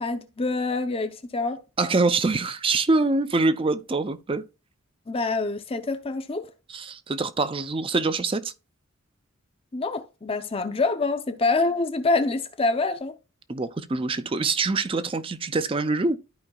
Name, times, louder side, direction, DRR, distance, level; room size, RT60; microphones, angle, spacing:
voice 1, 0.0-1.6 5.1-6.5 9.7-13.2, left 3 dB, 25° left, 0.5 m, -26 dB
voice 2, 1.8-4.4 6.7-8.5 13.5-16.2, right 3 dB, 25° right, 0.5 m, -24 dB
13.5 x 4.9 x 2.3 m
head